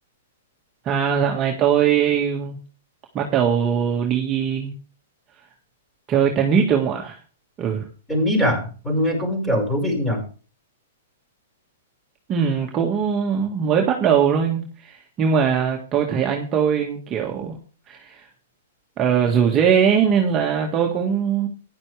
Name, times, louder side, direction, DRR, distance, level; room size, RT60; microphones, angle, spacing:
voice 1, 0.8-2.6 3.1-4.7 6.1-7.2 7.6-7.9 12.3-17.6 17.9-18.3 19.0-21.5, right 7 dB, 30° right, 1 dB, 1.8 m, -21 dB
voice 2, 8.1-10.2, equal, 5° left, 3 dB, 5.6 m, -22 dB
14.5 x 10.5 x 3.4 m, 0.38 s
hypercardioid pair, 125°, 0 cm